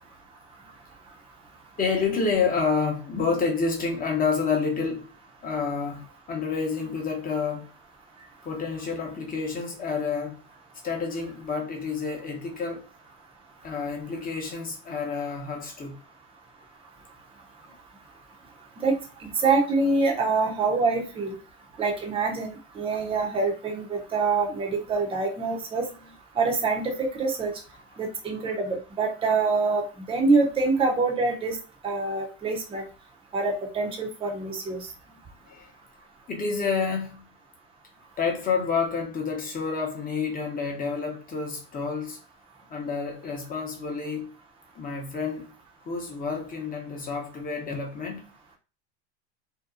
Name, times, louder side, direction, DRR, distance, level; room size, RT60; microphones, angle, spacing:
voice 1, 1.8-5.1 5.4-7.7 8.4-10.4 10.8-12.8 13.6-16.0 35.5-35.7 36.3-37.2 38.2-42.2 42.7-44.3 44.7-45.5 45.8-48.2, left 5 dB, 25° left, 0.8 m, -29 dB
voice 2, 19.2-21.3 21.8-25.9 26.4-27.5 28.0-31.6 31.8-32.8 33.3-34.9, right 3 dB, 15° right, 0.7 m, -25 dB
2.8 x 2.2 x 2.4 m
hypercardioid pair, 105°, 36 cm